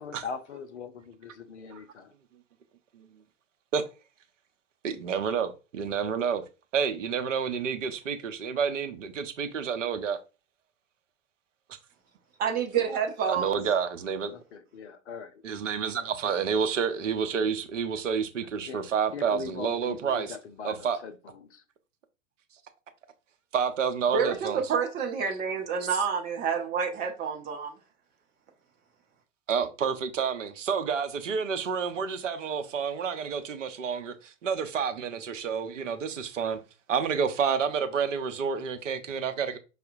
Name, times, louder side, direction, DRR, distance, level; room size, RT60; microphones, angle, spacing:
voice 1, 0.0-2.1 14.3-15.4 18.7-18.8 19.1-21.6, left 5 dB, 60° left, 0.6 m, -41 dB
voice 2, 4.8-6.4 6.7-10.2 13.3-14.3 15.4-20.3 20.6-21.0 23.5-24.6 29.5-36.6 36.9-39.6, right 6 dB, 70° right, 0.6 m, -29 dB
voice 3, 12.4-13.6 24.1-27.7, right 6 dB, 20° right, 0.7 m, -28 dB
5.4 x 2.1 x 2.5 m
figure-of-eight pair, 95°, 39 cm